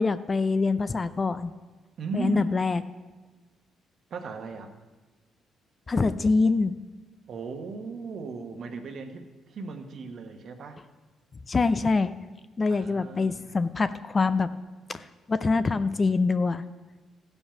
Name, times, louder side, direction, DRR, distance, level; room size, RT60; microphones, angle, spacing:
voice 1, 0.0-1.5 2.1-2.8 5.9-6.7 11.5-12.1 12.6-14.5 14.9-16.6, left 4 dB, 30° left, 12 dB, 0.5 m, -25 dB
voice 2, 2.0-2.4 4.1-4.7 7.3-10.8 12.7-13.6, right 4 dB, 60° right, 5 dB, 1.2 m, -36 dB
14.5 x 5.4 x 5.8 m, 1.3 s
cardioid pair, 90°, 0 cm